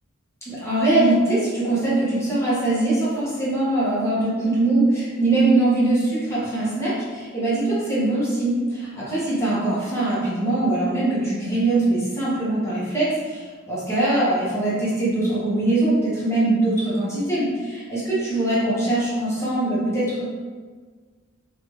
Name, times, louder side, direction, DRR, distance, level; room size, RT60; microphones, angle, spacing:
voice 1, 0.4-20.2, right 2 dB, 15° left, -9 dB, 0.9 m, -22 dB
2.8 x 2.4 x 3.1 m, 1.5 s
head